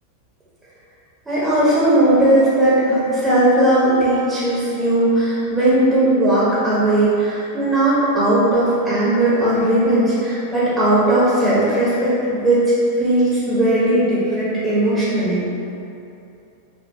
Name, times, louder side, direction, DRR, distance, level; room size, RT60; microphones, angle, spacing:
voice 1, 1.3-12.6 13.0-15.4, right 1 dB, 10° right, -10 dB, 1.1 m, -17 dB
5.6 x 2.5 x 3.0 m, 2.8 s
figure-of-eight pair, 90°, 0 cm